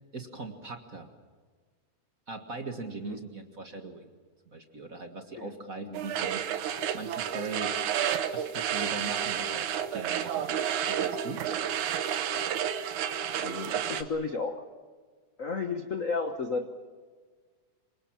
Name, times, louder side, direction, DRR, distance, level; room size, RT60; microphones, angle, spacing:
voice 1, 0.1-1.1 2.3-4.1 4.5-6.4 6.9-7.8 8.3-10.6 10.9-11.4, right 3 dB, 35° right, 5 dB, 1.5 m, -40 dB
sound 1, 5.9-14.0, right 10 dB, 75° right, 2.6 m, -31 dB
sound 2, 6.7-14.1, left 2 dB, 45° left, 1.9 m, -46 dB
voice 2, 13.3-14.6 15.4-16.7, left 4 dB, 70° left, 6 dB, 0.7 m, -33 dB
27.0 x 24.5 x 7.3 m, 1.5 s
omnidirectional pair, 3.5 m